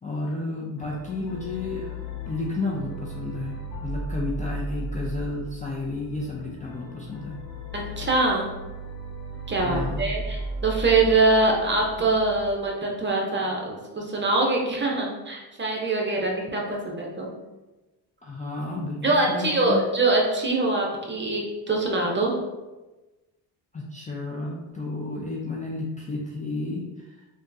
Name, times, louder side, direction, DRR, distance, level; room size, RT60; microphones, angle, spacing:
voice 1, 0.0-2.0 2.3-7.4 9.6-10.1 18.2-19.8 23.7-27.3, left 2 dB, 15° left, -4 dB, 0.4 m, -32 dB
sound 1, 0.8-12.5, right 1 dB, 90° left, 0.8 m, -36 dB
voice 2, 7.7-8.5 9.5-17.3 19.0-22.4, right 2 dB, 25° right, -1 dB, 0.8 m, -24 dB
3.5 x 2.3 x 2.7 m, 1.1 s
supercardioid pair, 70°, 46 cm